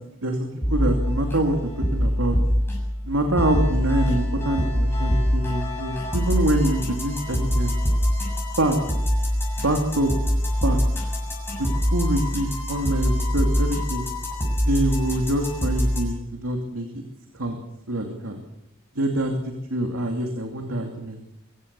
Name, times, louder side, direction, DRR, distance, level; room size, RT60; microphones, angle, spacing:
voice 1, 0.2-2.4 3.0-7.8 8.6-8.8 9.6-10.1 10.6-10.8 11.6-14.1 14.6-17.0 17.3-17.6 17.9-18.4 19.0-21.2, right 1 dB, 90° right, 3 dB, 2.7 m, -25 dB
sound 1, 0.6-16.0, equal, 10° left, 7.2 m, -24 dB
23.5 x 16.0 x 6.9 m, 0.85 s
head